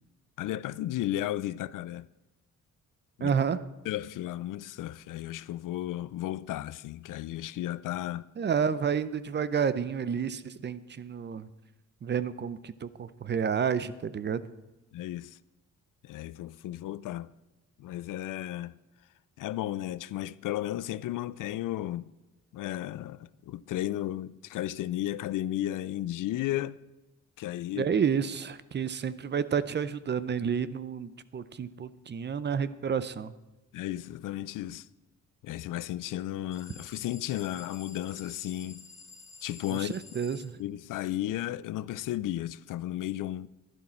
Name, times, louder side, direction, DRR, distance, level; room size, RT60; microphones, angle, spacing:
voice 1, 0.4-2.1 3.2-3.3 3.9-8.3 14.9-15.4 16.0-17.3 17.8-18.8 19.4-22.1 22.5-26.8 27.4-27.9 33.7-34.9 35.4-38.8 39.4-40.0 40.6-43.5, left 13 dB, 80° left, 0.5 m, -34 dB
voice 2, 3.2-3.6 8.4-11.5 12.0-14.4 27.8-33.3 39.7-40.6, right 7 dB, 35° right, 0.5 m, -30 dB
sound 1, 36.5-40.5, left 4 dB, 10° left, 2.4 m, -50 dB
12.0 x 11.5 x 4.4 m
cardioid pair, 120°, 31 cm